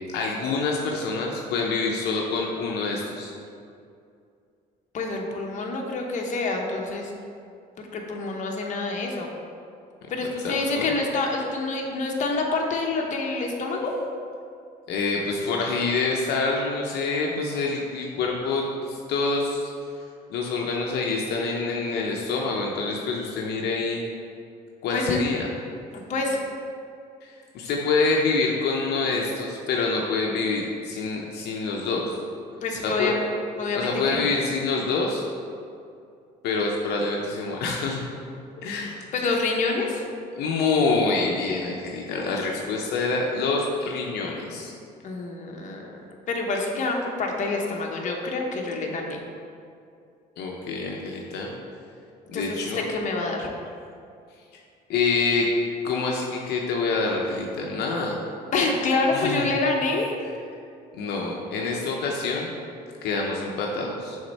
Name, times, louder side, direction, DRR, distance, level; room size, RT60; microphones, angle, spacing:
voice 1, 0.1-3.3 10.4-10.9 14.9-19.7 20.3-24.0 24.8-25.5 27.2-32.2 32.8-33.1 33.7-35.3 36.4-38.0 38.6-38.9 40.3-44.7 50.4-51.5 52.3-52.8 54.9-55.5 55.8-58.2 59.1-59.4 60.9-62.5 63.0-64.2, left 3 dB, 75° left, -1 dB, 0.7 m, -26 dB
voice 2, 4.9-7.1 7.9-9.3 10.1-13.9 24.9-25.2 26.1-26.4 32.6-33.2 33.5-34.2 38.6-40.0 45.0-46.0 46.3-49.2 52.3-53.5 58.5-60.2, left 3 dB, 45° left, 0 dB, 0.9 m, -27 dB
6.5 x 3.6 x 4.1 m, 2.4 s
cardioid pair, 110°, 17 cm